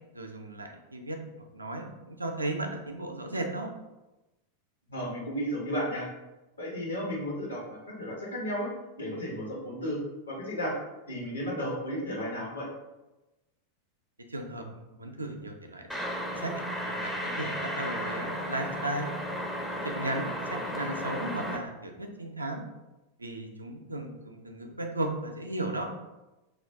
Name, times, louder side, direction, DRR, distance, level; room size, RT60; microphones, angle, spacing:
voice 1, 0.1-3.7 14.3-14.6 15.0-15.9 16.4-16.5 16.8-19.1 19.8-22.6 23.2-25.9, right 1 dB, 80° right, 3 dB, 0.3 m, -35 dB
voice 2, 4.9-6.1 6.6-8.7 9.0-10.0 10.3-10.7 11.1-12.7, equal, 75° left, -4 dB, 0.9 m, -33 dB
sound 1, 15.9-21.6, equal, 5° left, 0.4 m, -34 dB
2.3 x 2.2 x 3.3 m, 1.0 s
figure-of-eight pair, 90°, 0 cm